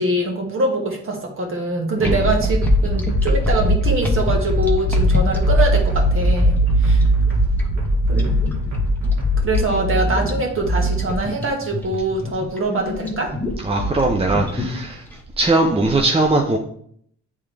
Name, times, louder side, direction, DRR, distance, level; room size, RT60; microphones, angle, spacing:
voice 1, 0.0-7.1 8.1-8.3 9.4-13.3, right 2 dB, 45° right, 1 dB, 1.8 m, -23 dB
sound 1, 2.0-15.1, right 2 dB, 5° left, 1.1 m, -22 dB
sound 2, 2.1-9.7, left 4 dB, 85° right, 1.7 m, -22 dB
voice 2, 13.6-15.0 15.4-16.6, right 2 dB, 20° right, 2 dB, 0.7 m, -19 dB
8.6 x 3.6 x 3.3 m, 0.65 s
cardioid pair, 90°, 30 cm